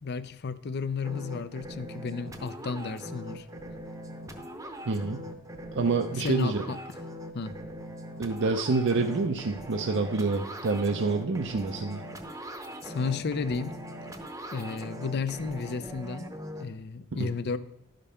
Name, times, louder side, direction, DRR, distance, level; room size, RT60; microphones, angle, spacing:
voice 1, 0.0-3.5 6.2-6.8 7.3-7.6 12.8-13.7 14.5-16.3 16.6-17.6, left 4 dB, 50° left, 14 dB, 0.5 m, -32 dB
sound 1, 1.0-16.6, equal, 15° right, 0.8 m, -41 dB
voice 2, 4.9-5.3 5.8-6.7 8.2-12.0 17.2-17.3, right 3 dB, 55° right, 5 dB, 0.5 m, -27 dB
12.0 x 5.2 x 5.6 m, 0.81 s
head